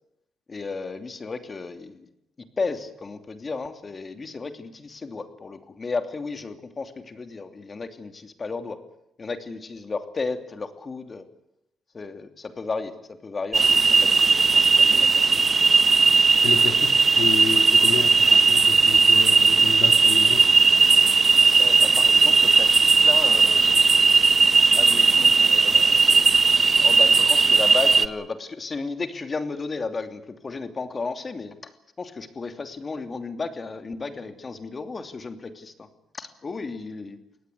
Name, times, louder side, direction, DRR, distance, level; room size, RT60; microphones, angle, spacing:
voice 1, 0.5-2.1 2.6-8.8 9.2-11.2 11.9-12.9 13.2-15.4 21.6-24.0 24.7-26.3 26.8-31.7 32.0-35.9 36.1-37.2, left 4 dB, 35° left, 8 dB, 2.9 m, -33 dB
sound 1, 13.5-28.1, right 4 dB, 35° right, 1.2 m, -17 dB
voice 2, 16.4-20.4, left 7 dB, 75° left, 8 dB, 2.5 m, -31 dB
23.5 x 18.5 x 8.5 m, 0.81 s
cardioid pair, 90°, 0 cm